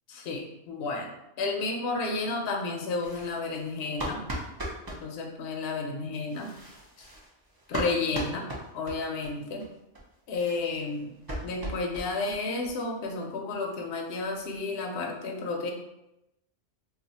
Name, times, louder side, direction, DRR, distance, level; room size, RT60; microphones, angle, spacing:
voice 1, 0.1-1.1 1.4-4.2 4.9-6.5 7.7-8.4 8.7-9.7 10.3-11.1 11.4-15.7, left 3 dB, 65° left, 1 dB, 0.8 m, -31 dB
sound 1, 3.0-5.0 6.2-9.3 9.6-9.7 9.9-10.0 10.3-12.4 12.6-12.7 13.1-13.2 13.5-13.6 13.9-14.7, right 1 dB, 30° right, 0.5 m, -38 dB
2.4 x 2.4 x 4.0 m, 0.89 s
omnidirectional pair, 1.2 m